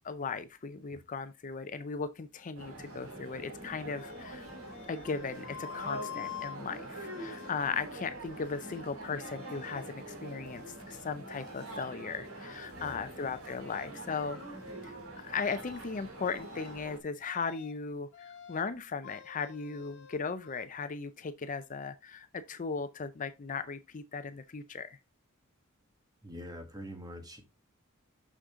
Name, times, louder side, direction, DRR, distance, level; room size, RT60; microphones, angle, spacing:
voice 1, 0.0-4.5 4.9-14.4 14.8-25.0, left 5 dB, 35° left, 0.5 m, -37 dB
sound 1, 2.6-17.0, right 1 dB, 75° right, 2.5 m, -45 dB
sound 2, 4.0-7.5 8.1-8.9 9.2-9.9 10.2-10.9 11.2-11.8 12.2-13.4 13.7-13.9 14.2-14.9 15.3-15.8 16.2-16.8 17.2-17.8 18.1-18.7 19.0-20.7, left 8 dB, 55° left, 1.6 m, -49 dB
voice 2, 12.7-13.1 26.2-27.4, equal, 20° right, 1.5 m, -44 dB
6.4 x 6.4 x 3.6 m
head